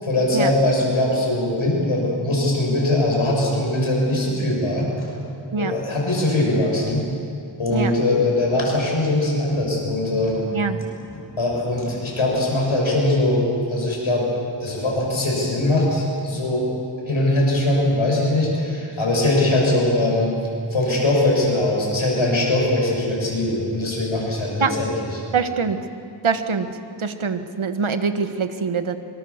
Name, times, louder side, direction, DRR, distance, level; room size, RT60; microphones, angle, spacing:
voice 1, 0.0-5.1 5.6-7.0 7.6-10.4 10.7-10.8 11.1-13.4 13.7-14.3 14.6-16.7 17.1-20.3 20.7-25.2, left 1 dB, 85° left, -2 dB, 7.3 m, -21 dB
voice 2, 25.3-25.8 26.2-26.7 27.0-28.9, right 5 dB, 90° right, 8 dB, 1.5 m, -23 dB
26.0 x 25.0 x 7.3 m, 2.7 s
wide cardioid pair, 65°, 47 cm